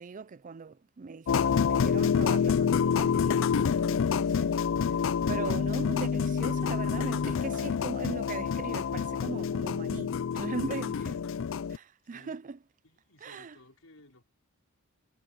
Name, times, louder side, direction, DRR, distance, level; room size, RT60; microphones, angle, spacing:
voice 1, 0.0-4.5 4.8-4.9 5.3-11.2 11.7-12.6 13.2-13.6, right 4 dB, 40° right, 0.4 m, -40 dB
sound 1, 1.3-11.8, left 6 dB, 65° left, 0.4 m, -27 dB
voice 2, 11.0-11.6 12.0-12.4 12.8-14.2, left 2 dB, 90° left, 5.1 m, -58 dB
head